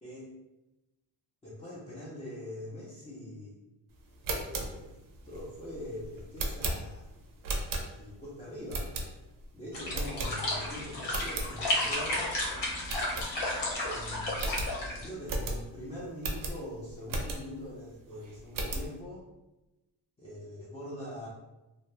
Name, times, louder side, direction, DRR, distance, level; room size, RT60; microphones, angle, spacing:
voice 1, 1.4-3.5 4.3-5.0 5.2-7.1 7.9-8.9 9.5-12.3 13.9-14.4 14.9-19.3 20.2-21.3, left 1 dB, 15° left, -7 dB, 0.4 m, -43 dB
sound 1, 4.1-8.2 8.7-9.4 9.9-10.7 11.0-11.5 11.9-12.0 12.3-12.4 12.8-13.8 14.0-14.1 14.3-17.7 18.1-18.9, right 2 dB, 50° right, 0.5 m, -36 dB
sound 2, 9.7-15.1, left 1 dB, 80° left, 1.0 m, -33 dB
2.5 x 2.0 x 2.9 m, 1.0 s
wide cardioid pair, 175°, 42 cm